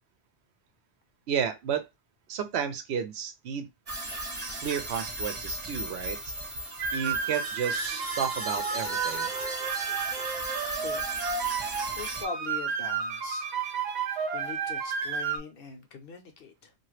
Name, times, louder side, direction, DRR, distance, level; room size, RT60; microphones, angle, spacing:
voice 1, 1.3-1.9 2.3-3.7 4.6-6.3 6.9-9.3, right 7 dB, 80° right, 0.9 m, -32 dB
sound 1, 3.9-12.2, right 1 dB, 35° right, 0.9 m, -36 dB
sound 2, 6.8-15.4, right 6 dB, 55° right, 0.5 m, -32 dB
voice 2, 10.7-11.1 12.0-13.5 14.3-16.7, left 5 dB, 60° left, 0.8 m, -42 dB
2.8 x 2.4 x 3.1 m
omnidirectional pair, 1.1 m